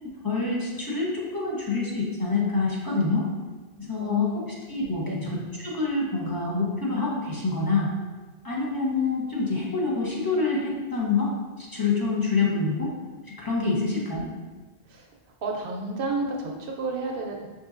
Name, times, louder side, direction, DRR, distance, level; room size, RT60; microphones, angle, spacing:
voice 1, 0.0-3.3 3.9-4.3 4.7-5.3 5.6-7.9 8.4-11.3 11.6-12.9 13.4-14.3, left 4 dB, 25° left, -5 dB, 0.6 m, -26 dB
voice 2, 4.0-4.5 5.1-5.4 13.7-14.2 14.9-15.1 15.4-17.5, right 3 dB, 65° right, 0 dB, 0.7 m, -32 dB
5.9 x 2.7 x 2.4 m, 1.3 s
omnidirectional pair, 1.1 m